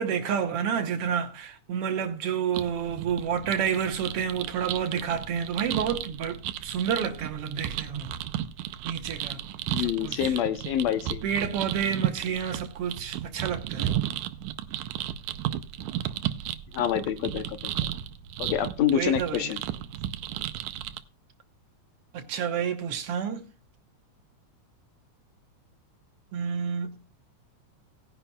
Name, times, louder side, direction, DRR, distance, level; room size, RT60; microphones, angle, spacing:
voice 1, 0.0-8.1 8.8-9.4 9.8-10.4 11.2-14.0 18.8-19.6 22.1-23.4 26.3-26.9, right 7 dB, 65° right, 1.8 m, -29 dB
sound 1, 2.6-21.0, right 12 dB, 90° right, 2.1 m, -34 dB
voice 2, 9.7-11.3 16.7-17.7 18.4-19.6, left 10 dB, 70° left, 2.0 m, -27 dB
18.5 x 10.0 x 2.3 m
omnidirectional pair, 3.4 m